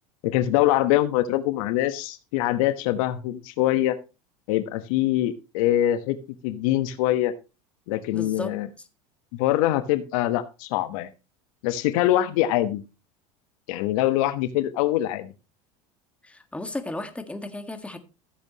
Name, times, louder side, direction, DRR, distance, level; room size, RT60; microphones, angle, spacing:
voice 1, 0.2-4.0 4.5-6.2 6.4-7.3 7.9-8.7 9.3-11.1 11.6-12.8 13.7-15.3, left 14 dB, 70° left, 1.2 m, -23 dB
voice 2, 8.1-8.6 16.2-18.0, left 2 dB, 5° left, 1.7 m, -34 dB
14.5 x 8.1 x 3.0 m
hypercardioid pair, 95°, 18 cm